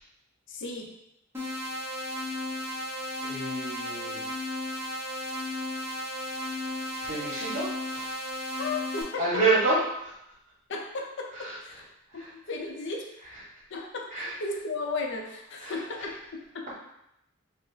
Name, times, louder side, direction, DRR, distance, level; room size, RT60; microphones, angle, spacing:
voice 1, 0.5-0.9 8.6-9.4 10.7-11.8 12.1-13.1 13.7-16.7, left 3 dB, 55° left, 1 dB, 0.5 m, -35 dB
sound 1, 1.3-9.0, left 1 dB, 10° right, 0.9 m, -34 dB
voice 2, 3.2-4.3 7.0-8.1 9.2-9.8 14.1-14.3 15.6-15.7, right 3 dB, 35° right, -6 dB, 1.2 m, -28 dB
3.8 x 2.0 x 3.8 m, 0.81 s
head